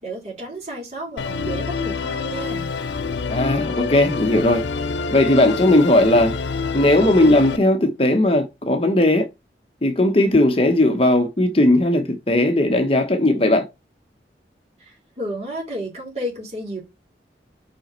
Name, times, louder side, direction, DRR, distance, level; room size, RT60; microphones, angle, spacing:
voice 1, 0.0-2.7 14.8-16.8, right 1 dB, 40° right, 4.0 m, -32 dB
Musical instrument, 1.2-7.6, left 4 dB, 90° left, 0.6 m, -27 dB
voice 2, 3.3-4.6 5.1-6.3 6.7-9.3 9.8-13.7, left 1 dB, 30° left, 0.9 m, -17 dB
5.5 x 5.1 x 4.4 m
head